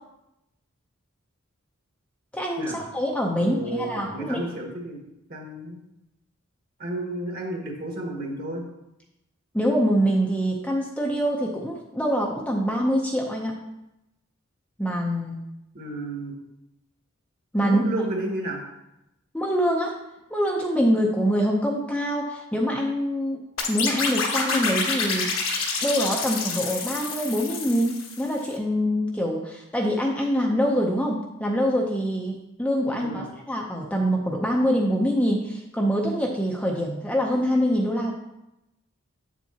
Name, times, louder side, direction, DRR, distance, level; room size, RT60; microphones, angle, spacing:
voice 1, 2.3-4.4 9.5-13.6 14.8-15.4 17.5-17.8 19.3-19.9 20.3-23.4 23.7-25.3 25.8-38.1, equal, 5° left, -1 dB, 0.6 m, -25 dB
voice 2, 3.3-5.0 5.3-5.8 6.8-8.6 15.7-16.3 17.6-18.6 32.9-33.3, right 1 dB, 45° right, 0 dB, 1.6 m, -32 dB
sound 1, 23.6-28.4, left 4 dB, 70° left, 1.2 m, -28 dB
8.2 x 7.2 x 2.8 m, 0.89 s
head